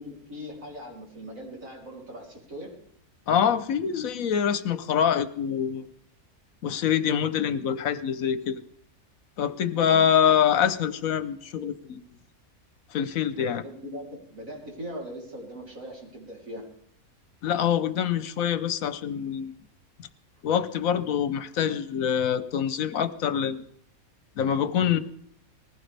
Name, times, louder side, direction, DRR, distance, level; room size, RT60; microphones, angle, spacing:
voice 1, 0.0-2.8 9.9-10.3 13.4-16.7, equal, 65° right, -2 dB, 3.8 m, -40 dB
voice 2, 3.3-5.9 6.6-8.6 9.4-12.0 12.9-13.6 17.4-19.5 20.4-23.6 24.4-25.0, left 8 dB, 75° left, 13 dB, 1.2 m, -25 dB
20.0 x 15.5 x 3.4 m, 0.65 s
omnidirectional pair, 1.5 m